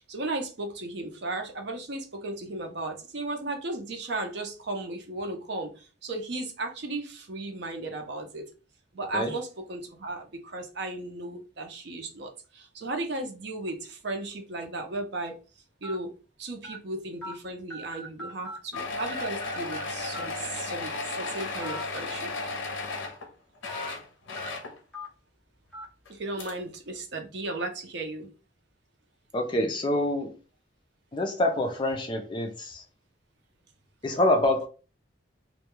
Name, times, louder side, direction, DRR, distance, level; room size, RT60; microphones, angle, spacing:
voice 1, 0.0-8.5 8.9-15.3 15.8-16.1 16.4-22.3 26.1-28.3, right 2 dB, 65° right, 0.6 m, -35 dB
sound 1, 13.7-13.9 14.6-14.7 15.8-15.9 16.6-16.8 17.2-17.3 17.7-18.9 19.1-19.8 20.1-20.3 21.5-21.8 22.2-22.3 23.7-23.9 24.4-24.5 24.9-25.1 25.7-25.8, left 1 dB, 5° left, 0.8 m, -39 dB
sound 2, 18.7-23.3 23.6-24.8 26.1-26.2 26.4-26.5, left 3 dB, 80° left, 0.6 m, -34 dB
voice 2, 29.3-30.4 31.1-32.8 34.0-34.7, left 1 dB, 25° left, 0.3 m, -26 dB
2.2 x 2.2 x 3.0 m
head